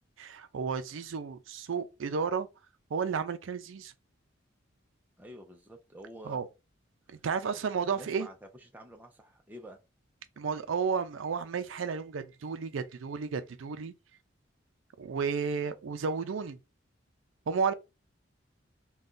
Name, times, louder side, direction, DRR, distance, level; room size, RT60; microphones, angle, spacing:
voice 1, 0.2-2.5 2.9-3.9 6.3-6.5 7.1-8.3 10.4-13.9 15.0-16.6 17.5-17.7, right 5 dB, 80° right, 0.4 m, -32 dB
voice 2, 5.2-6.4 7.5-9.8, right 1 dB, 10° right, 0.4 m, -49 dB
2.6 x 2.2 x 3.6 m
head